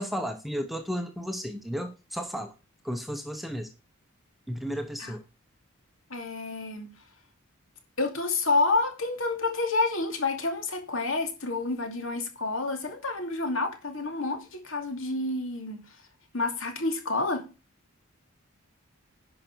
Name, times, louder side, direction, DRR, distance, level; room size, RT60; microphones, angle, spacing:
voice 1, 0.0-2.5 2.8-3.7 4.5-5.2, equal, ahead, 0.8 m, -33 dB
voice 2, 6.1-6.9 8.0-15.8 16.3-17.5, left 3 dB, 65° left, 2.5 m, -29 dB
10.5 x 5.9 x 4.6 m
head